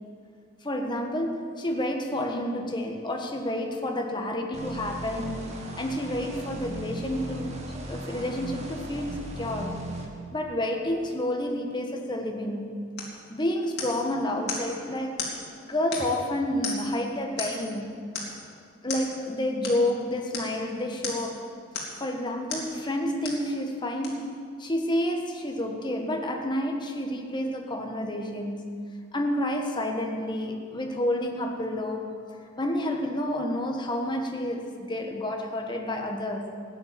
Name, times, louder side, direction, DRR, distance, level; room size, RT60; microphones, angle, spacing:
voice 1, 0.6-5.4 5.8-7.6 7.9-9.8 10.3-12.8 13.3-15.2 15.6-18.0 18.8-21.5 22.0-24.3 24.6-36.5, left 1 dB, 20° left, 2 dB, 1.4 m, -30 dB
sound 1, 4.5-10.1, right 1 dB, 30° right, 1.6 m, -37 dB
sound 2, 13.0-13.2 13.8-14.1 14.5-14.7 15.2-15.4 15.9-16.2 16.6-17.0 17.4-17.7 18.1-18.4 18.9-19.1 19.6-19.8 20.3-20.5 21.0-21.3 21.7-22.0 22.5-22.7 23.2-23.5 24.0-24.1, left 4 dB, 55° left, 3.0 m, -34 dB
16.0 x 10.0 x 7.4 m, 2.2 s
head